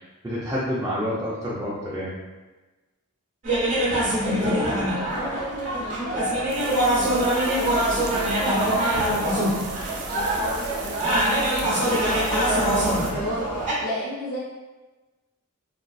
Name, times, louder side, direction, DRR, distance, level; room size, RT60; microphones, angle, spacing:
voice 1, 0.0-2.1, equal, 15° right, -8 dB, 0.4 m, -28 dB
sound 1, 3.4-13.7, right 1 dB, 35° right, 0.8 m, -24 dB
voice 2, 4.0-14.4, equal, 65° left, -8 dB, 0.7 m, -33 dB
sound 2, 6.5-13.1, right 5 dB, 75° right, 0.4 m, -39 dB
3.7 x 2.3 x 2.3 m, 1.2 s
head